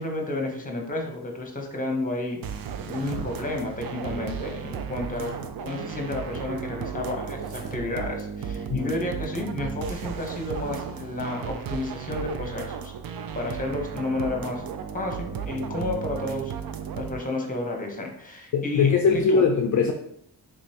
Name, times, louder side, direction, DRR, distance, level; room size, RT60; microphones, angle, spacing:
voice 1, 0.0-5.3 5.6-12.9 13.3-14.6 14.9-16.5 17.0-19.4, left 2 dB, 20° left, 2 dB, 1.0 m, -31 dB
sound 1, 2.4-17.2, right 7 dB, 55° right, 0.5 m, -35 dB
sound 2, 2.7-3.3 4.7-5.5 7.4-7.8 9.7-10.2, right 4 dB, 85° right, 0.8 m, -44 dB
voice 2, 18.5-19.9, left 5 dB, 45° left, 4 dB, 0.4 m, -21 dB
3.6 x 3.0 x 2.8 m, 0.74 s
cardioid pair, 55°, 43 cm